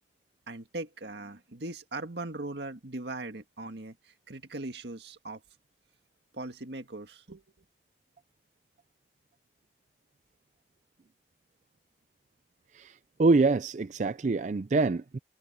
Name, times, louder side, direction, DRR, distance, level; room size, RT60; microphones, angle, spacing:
voice 1, 0.5-4.0 4.3-5.4 6.3-7.4, right 2 dB, 75° right, 1.8 m, -39 dB
voice 2, 12.7-15.2, right 3 dB, 45° right, 0.4 m, -25 dB
head